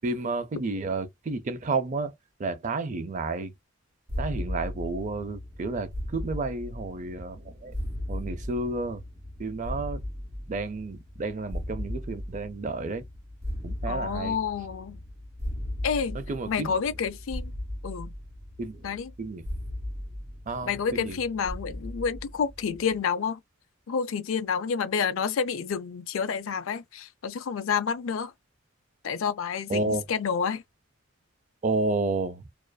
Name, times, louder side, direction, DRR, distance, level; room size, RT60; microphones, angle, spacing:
voice 1, 0.0-2.1 2.4-3.5 4.2-7.7 8.1-9.0 9.4-10.0 10.5-13.0 13.6-14.4 16.1-16.8 18.6-18.9 19.2-19.4 20.5-21.2 29.7-30.0 31.6-32.5, right 3 dB, 40° right, 0.4 m, -31 dB
sound 1, 4.1-23.0, left 1 dB, 15° right, 1.1 m, -37 dB
voice 2, 13.9-15.0 15.8-16.2 16.5-17.5 17.8-18.1 18.8-19.1 20.6-23.4 23.9-28.3 29.0-30.6, left 6 dB, 75° left, 0.4 m, -29 dB
2.4 x 2.4 x 2.2 m
head